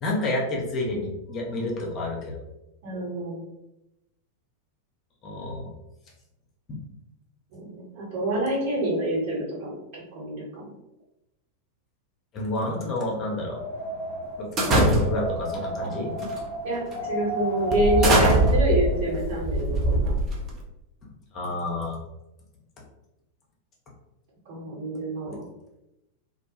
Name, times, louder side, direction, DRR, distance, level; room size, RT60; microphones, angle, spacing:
voice 1, 0.0-2.4 5.2-5.7 6.7-6.8 12.3-13.6 14.4-16.1 21.3-22.0, left 2 dB, 30° left, -2 dB, 0.6 m, -29 dB
voice 2, 2.8-3.4 7.5-9.8 10.1-10.7 16.6-20.2 24.5-25.4, right 1 dB, 55° right, -6 dB, 1.3 m, -27 dB
Wind, 13.2-19.3, right 1 dB, 80° right, 1.2 m, -33 dB
sound 1, 14.6-15.4 16.2-16.5 16.9-17.0 17.7-20.6, right 1 dB, 30° right, 0.6 m, -22 dB
2.3 x 2.2 x 2.9 m, 0.93 s
figure-of-eight pair, 90°, 0 cm